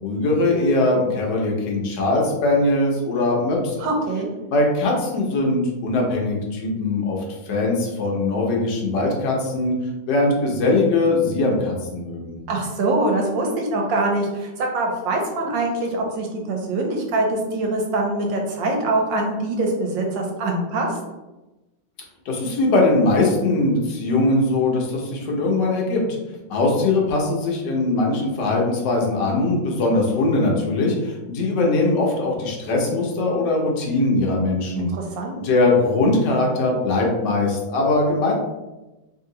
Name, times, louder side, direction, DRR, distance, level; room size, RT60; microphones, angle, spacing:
voice 1, 0.0-3.9 4.5-7.2 7.4-9.7 10.1-12.4 22.2-26.0 26.5-34.9 35.4-38.3, left 2 dB, 70° left, -1 dB, 1.5 m, -21 dB
voice 2, 3.8-4.3 12.5-20.9 34.7-35.4, right 2 dB, 90° right, 1 dB, 1.5 m, -24 dB
3.5 x 2.8 x 3.7 m, 1.0 s
omnidirectional pair, 2.0 m